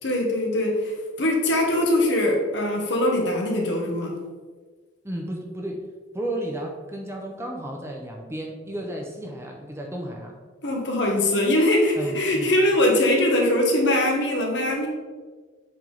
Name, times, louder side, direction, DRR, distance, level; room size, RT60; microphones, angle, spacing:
voice 1, 0.0-4.1 10.6-14.9, left 1 dB, 60° left, 0 dB, 1.2 m, -22 dB
voice 2, 5.0-5.9 6.1-10.3 12.0-12.5, right 1 dB, 15° right, 0 dB, 0.6 m, -33 dB
7.4 x 3.6 x 3.9 m, 1.4 s
head